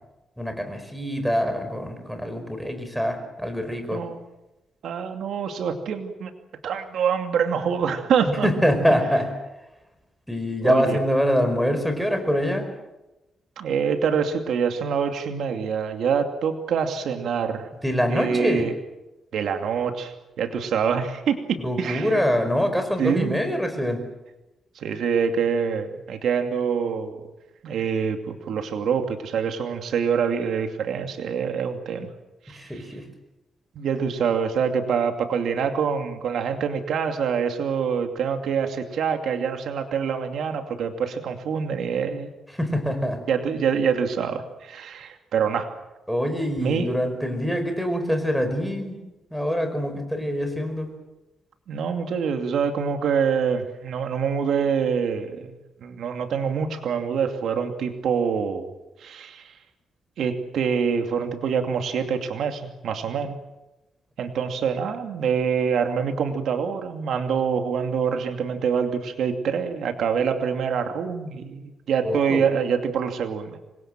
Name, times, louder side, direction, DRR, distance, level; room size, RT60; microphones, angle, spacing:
voice 1, 0.4-4.0 8.3-9.3 10.3-12.7 17.8-18.7 21.6-24.0 32.5-33.0 42.5-43.2 46.1-49.0 49.3-50.9 72.0-72.4, equal, ahead, 7 dB, 4.9 m, -24 dB
voice 2, 4.8-6.3 6.6-8.5 8.9-9.0 10.6-11.0 13.6-17.7 18.1-18.7 19.3-22.2 23.0-23.4 24.8-27.2 27.6-32.1 32.5-32.8 33.8-42.3 43.3-45.7 46.6-47.0 51.7-55.5 55.8-58.7 59.0-59.5 60.2-63.4 64.2-73.6, right 6 dB, 80° right, 5 dB, 2.5 m, -25 dB
26.5 x 22.0 x 7.6 m, 1.0 s
cardioid pair, 115°, 0 cm